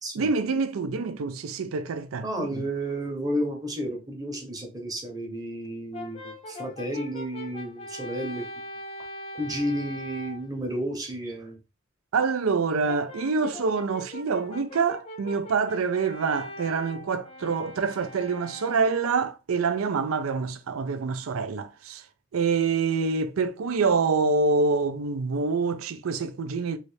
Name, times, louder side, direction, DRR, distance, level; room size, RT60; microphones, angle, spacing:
voice 1, 0.1-2.6 12.1-22.0 22.3-26.8, right 4 dB, 90° right, 0.4 m, -26 dB
voice 2, 2.2-8.4 9.3-11.6, equal, 20° right, 0.8 m, -32 dB
Brass instrument, 5.9-10.5 12.9-19.2, left 1 dB, 30° left, 0.5 m, -41 dB
3.2 x 2.6 x 3.1 m
head